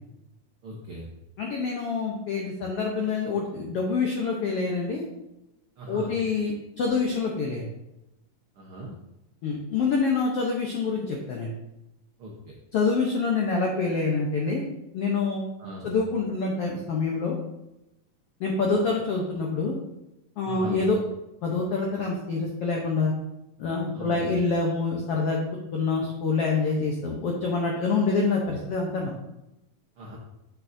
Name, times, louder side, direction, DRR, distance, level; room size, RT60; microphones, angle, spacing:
voice 1, 0.6-1.1 5.8-6.1 8.5-8.9 12.2-12.5 15.6-15.9 20.4-20.8 23.9-24.4 30.0-30.2, equal, 80° right, -2 dB, 1.2 m, -39 dB
voice 2, 1.4-5.0 5.9-7.6 9.4-11.5 12.7-14.6 14.9-15.4 15.8-17.4 18.4-19.8 20.4-21.0 21.4-23.1 23.6-25.4 25.7-29.1, left 4 dB, 80° left, -1 dB, 1.3 m, -26 dB
7.6 x 7.2 x 2.6 m, 0.91 s
omnidirectional pair, 3.9 m